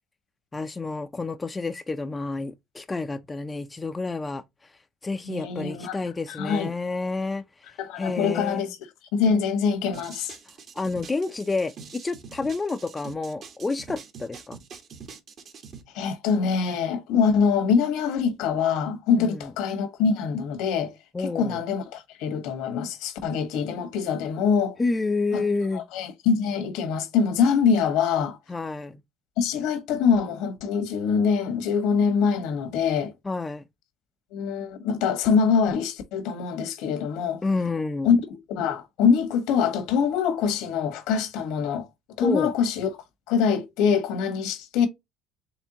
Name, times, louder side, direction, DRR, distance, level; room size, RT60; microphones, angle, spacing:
voice 1, 0.5-4.4 5.0-7.4 8.0-8.7 10.8-14.6 19.2-19.5 21.1-21.6 24.8-25.8 28.5-29.0 33.2-33.6 37.4-38.1 42.2-42.5, left 3 dB, 15° left, 0.5 m, -29 dB
voice 2, 5.2-6.0 6.3-6.7 7.8-8.8 9.1-10.3 15.9-20.9 21.2-24.8 25.3-25.4 25.7-28.4 29.4-33.1 34.3-37.4 38.0-41.9 42.2-42.9 43.3-44.9, left 6 dB, 80° left, 1.3 m, -24 dB
sound 1, 9.9-15.8, right 6 dB, 45° right, 1.2 m, -44 dB
4.4 x 3.4 x 2.8 m
cardioid pair, 110°, 0 cm